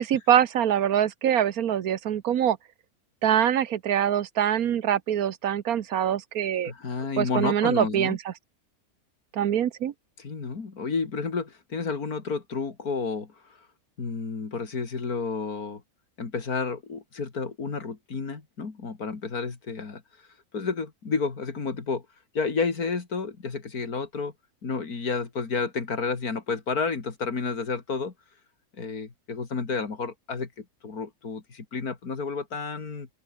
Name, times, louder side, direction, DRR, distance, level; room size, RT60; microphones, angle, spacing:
voice 1, 0.0-2.6 3.2-6.7 7.2-8.2 9.3-9.9, right 10 dB, 80° right, 1.4 m, -24 dB
voice 2, 6.6-8.2 10.2-13.6 14.0-15.8 16.2-20.0 20.5-22.0 22.3-24.3 24.6-28.1 28.8-33.1, left 4 dB, 85° left, 3.1 m, -31 dB
open air
omnidirectional pair, 1.5 m